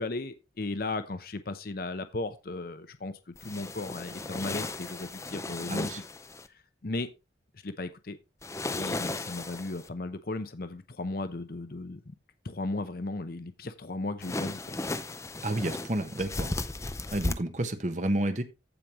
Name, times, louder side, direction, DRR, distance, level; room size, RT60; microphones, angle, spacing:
voice 1, 0.0-3.1 3.4-6.0 6.8-7.1 7.6-8.2 8.7-12.0 12.4-14.7, left 2 dB, 55° left, 0.8 m, -35 dB
sound 1, 3.4-6.5 8.4-9.9 14.2-17.3, left 2 dB, 15° left, 0.6 m, -35 dB
voice 2, 5.7-6.0 15.4-16.5 17.1-18.4, right 1 dB, 45° right, 1.2 m, -30 dB
15.0 x 5.2 x 3.0 m
head